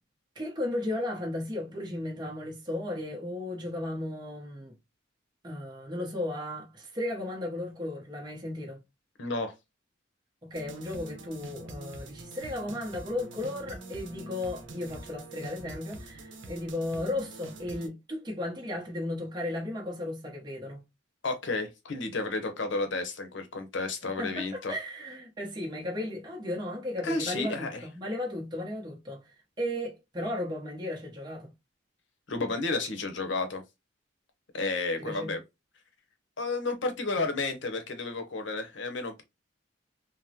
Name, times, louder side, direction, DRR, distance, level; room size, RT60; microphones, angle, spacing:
voice 1, 0.3-4.8 5.4-8.8 10.4-20.8 24.0-31.5 35.0-35.4, left 1 dB, 20° right, 0.8 m, -35 dB
voice 2, 9.2-9.5 21.2-24.7 27.0-27.8 32.3-33.6 34.5-35.4 36.4-39.2, left 3 dB, 65° left, 0.7 m, -32 dB
sound 1, 10.5-17.9, right 2 dB, 70° right, 0.7 m, -45 dB
3.5 x 2.0 x 2.7 m
head